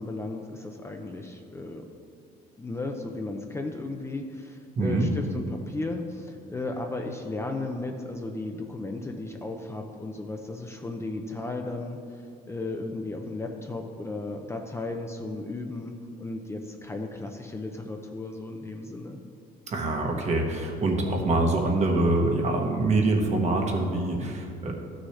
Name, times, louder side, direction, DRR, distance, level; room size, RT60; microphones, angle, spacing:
voice 1, 0.0-1.8 2.6-12.0 12.5-19.2, left 2 dB, 15° left, 3 dB, 0.6 m, -35 dB
voice 2, 4.8-5.1 19.7-24.7, right 2 dB, 40° right, 1 dB, 1.2 m, -25 dB
12.5 x 6.3 x 3.2 m, 2.4 s
cardioid pair, 110°, 17 cm